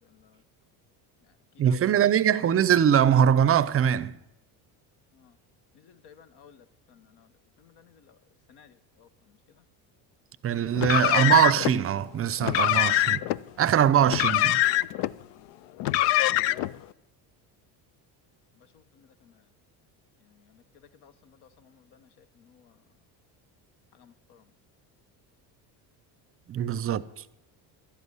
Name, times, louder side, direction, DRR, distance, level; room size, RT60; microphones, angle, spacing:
voice 1, 0.0-0.4 1.2-1.8 2.1-2.2 5.1-5.4 5.7-7.3 7.6-8.2 8.5-9.6 16.2-16.4 18.5-19.4 20.2-22.8 23.9-24.4 26.6-27.0, left 7 dB, 65° left, 1.1 m, -58 dB
voice 2, 1.6-4.1 10.4-13.2 13.6-14.6 26.5-27.1, right 9 dB, 35° right, 0.6 m, -22 dB
Car, 10.8-11.7 12.4-13.4 14.1-15.1 15.8-16.7, left 15 dB, 85° left, 0.5 m, -24 dB
11.5 x 8.1 x 9.6 m
cardioid pair, 115°, 43 cm